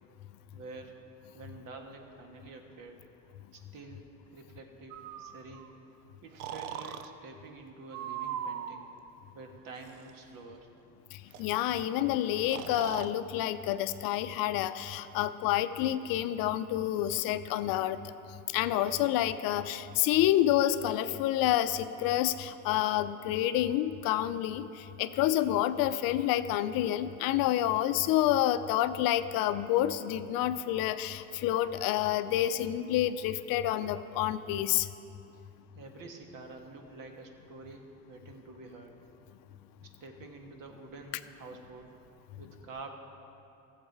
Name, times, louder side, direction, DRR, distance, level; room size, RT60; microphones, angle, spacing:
voice 1, 0.5-1.0 1.3-3.0 3.5-5.8 6.2-8.9 9.3-10.7 35.3-35.4 35.7-38.9 39.8-41.9 42.4-42.9, right 3 dB, 50° right, 4 dB, 1.7 m, -48 dB
Breathing, 4.9-5.7 6.4-7.1 7.9-8.9 9.7-10.1 11.3-11.4 11.7-11.8 12.5-13.1, right 9 dB, 90° right, 0.6 m, -39 dB
voice 2, 11.4-18.0 18.5-34.9, left 12 dB, 55° left, 12 dB, 0.6 m, -28 dB
14.0 x 7.5 x 4.7 m, 2.7 s
hypercardioid pair, 80°, 41 cm